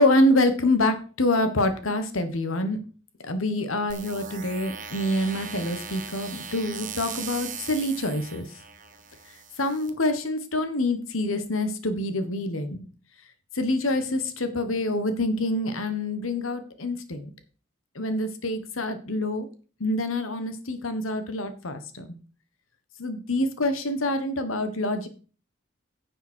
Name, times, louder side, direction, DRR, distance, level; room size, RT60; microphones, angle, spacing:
voice 1, 0.0-2.8 3.2-8.5 9.6-12.8 13.6-17.3 17.9-19.5 19.8-22.1 23.0-25.1, left 1 dB, 85° left, 9 dB, 1.4 m, -26 dB
sound 1, 3.9-9.9, right 6 dB, 40° right, 1.1 m, -39 dB
10.5 x 7.0 x 4.5 m, 0.38 s
head